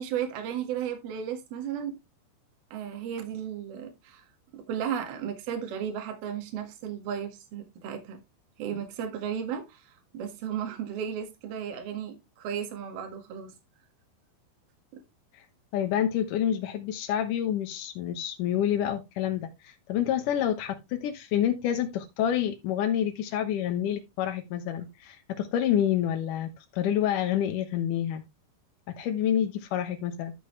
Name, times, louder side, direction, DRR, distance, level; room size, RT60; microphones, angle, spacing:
voice 1, 0.0-1.9 2.7-4.3 4.5-8.2 8.6-13.5 14.9-15.0, right 8 dB, 60° right, 3.4 m, -34 dB
voice 2, 15.7-28.2 28.9-30.3, left 10 dB, 80° left, 1.8 m, -28 dB
13.0 x 5.5 x 3.2 m
omnidirectional pair, 5.3 m